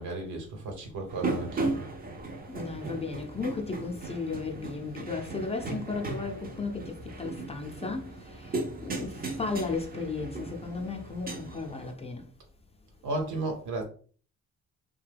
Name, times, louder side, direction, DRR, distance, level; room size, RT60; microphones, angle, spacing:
voice 1, 0.0-1.8 13.0-13.8, right 2 dB, 75° right, 1.1 m, -34 dB
sound 1, 1.1-11.9, right 3 dB, 30° right, 0.6 m, -37 dB
voice 2, 2.5-12.2, left 4 dB, 20° left, 0.6 m, -35 dB
2.7 x 2.2 x 3.4 m
cardioid pair, 90°, 30 cm